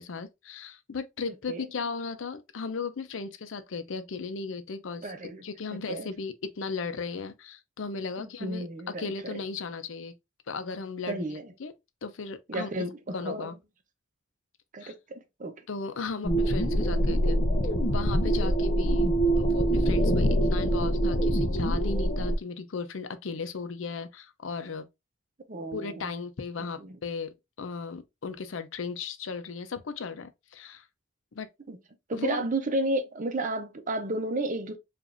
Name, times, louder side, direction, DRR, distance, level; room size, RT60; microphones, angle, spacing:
voice 1, 0.0-5.1 5.4-10.1 10.5-11.2 11.6-11.7 12.0-12.7 13.1-13.5 14.8-14.9 15.7-17.4 17.9-19.1 19.4-24.9 25.7-30.9 31.3-31.5 32.1-32.4, left 4 dB, 90° left, 0.6 m, -36 dB
voice 2, 5.0-5.4 5.9-6.1 8.2-9.4 11.1-11.4 12.5-13.5 14.7-15.6 25.5-26.1 26.8-26.9 31.7-31.8 32.1-34.8, right 2 dB, 40° right, 0.7 m, -32 dB
sound 1, 16.2-22.3, right 1 dB, 40° left, 0.6 m, -24 dB
4.9 x 2.5 x 2.5 m
head